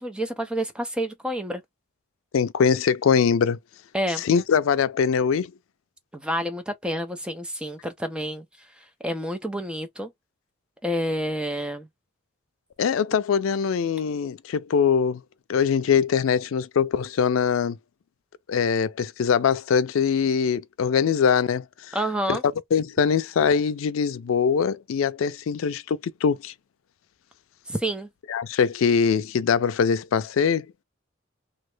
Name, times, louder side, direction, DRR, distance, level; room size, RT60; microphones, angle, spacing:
voice 1, 0.0-1.6 3.9-4.2 6.1-8.4 9.0-10.1 10.8-11.9 21.9-22.4 27.7-28.1, equal, 5° right, 0.5 m, -28 dB
voice 2, 2.3-3.6 4.2-5.5 12.8-15.2 15.5-17.8 18.5-22.0 22.3-22.4 22.7-26.5 28.3-30.7, left 6 dB, 90° left, 0.4 m, -22 dB
3.1 x 2.0 x 3.2 m
head